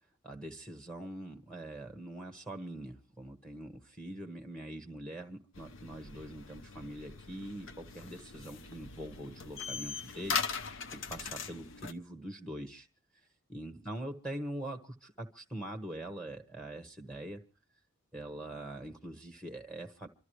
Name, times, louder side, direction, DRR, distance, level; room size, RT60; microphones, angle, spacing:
voice 1, 0.2-10.4 10.7-12.9 13.5-17.4 18.1-20.1, right 1 dB, 5° left, 5 dB, 1.1 m, -43 dB
sound 1, 5.5-11.9, left 6 dB, 70° left, 0.8 m, -40 dB
26.0 x 13.0 x 3.1 m, 0.37 s
head